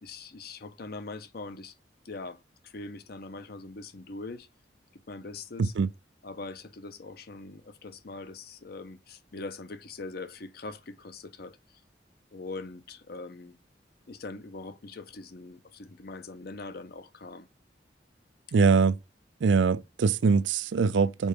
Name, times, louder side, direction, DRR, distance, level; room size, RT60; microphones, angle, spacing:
voice 1, 0.0-1.7 2.0-4.5 5.1-5.7 6.2-11.6 12.3-13.6 14.1-17.5 18.5-18.8, left 3 dB, 55° left, 0.7 m, -42 dB
voice 2, 5.6-5.9 18.5-19.0 19.4-21.3, right 5 dB, 80° right, 0.4 m, -23 dB
5.3 x 4.5 x 5.0 m
head